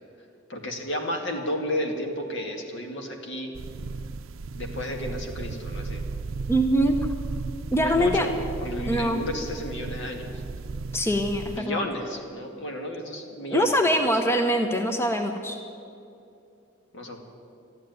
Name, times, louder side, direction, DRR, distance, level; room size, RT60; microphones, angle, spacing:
voice 1, 0.5-3.5 4.6-6.0 7.7-8.3 8.6-10.4 11.5-14.1 16.9-17.2, left 1 dB, 60° left, 3 dB, 2.1 m, -32 dB
sound 1, 3.5-11.6, right 4 dB, 70° right, 0.5 m, -35 dB
voice 2, 6.5-7.0 7.7-8.3 8.9-9.2 10.9-11.9 13.5-15.6, equal, 10° left, 5 dB, 0.7 m, -23 dB
13.0 x 12.0 x 9.2 m, 2.6 s
head